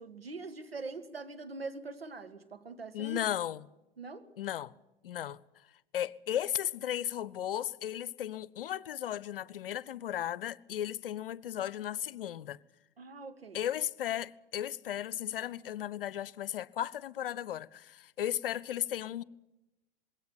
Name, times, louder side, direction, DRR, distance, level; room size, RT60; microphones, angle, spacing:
voice 1, 0.0-3.2 4.0-4.3 13.0-13.6, right 3 dB, 85° right, 1.7 m, -43 dB
voice 2, 2.9-3.6 4.4-4.7 5.0-5.4 5.9-12.6 13.5-19.2, left 11 dB, 70° left, 0.7 m, -35 dB
21.0 x 17.5 x 8.7 m
figure-of-eight pair, 90°, 29 cm